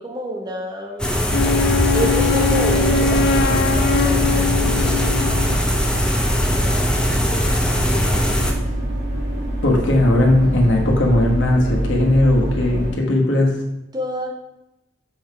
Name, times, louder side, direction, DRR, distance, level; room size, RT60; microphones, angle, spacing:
voice 1, 0.0-1.5 1.9-8.6 13.9-14.3, right 1 dB, 25° right, 0 dB, 1.2 m, -31 dB
sound 1, 1.0-8.5, equal, 5° left, 0.7 m, -21 dB
Wind instrument woodwind instrument, 1.3-5.7, left 6 dB, 60° left, 0.3 m, -22 dB
sound 2, 1.3-12.9, right 1 dB, 65° right, 2.1 m, -25 dB
voice 2, 9.6-13.5, left 1 dB, 85° left, -1 dB, 1.4 m, -17 dB
7.0 x 4.0 x 4.7 m, 0.91 s
head